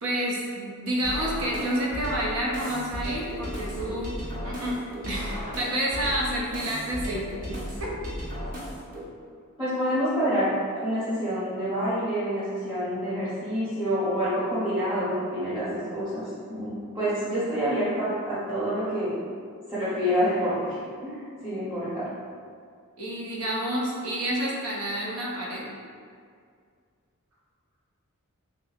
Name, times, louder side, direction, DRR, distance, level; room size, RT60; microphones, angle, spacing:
voice 1, 0.0-4.1 4.4-4.8 5.1-7.9 23.0-25.7, right 1 dB, 80° right, -3 dB, 0.7 m, -29 dB
sound 1, 1.0-9.0, equal, 40° right, 0.7 m, -35 dB
voice 2, 9.6-19.2 19.7-20.8 21.0-22.1, equal, 10° right, -13 dB, 0.8 m, -27 dB
3.1 x 2.0 x 4.0 m, 2.2 s
head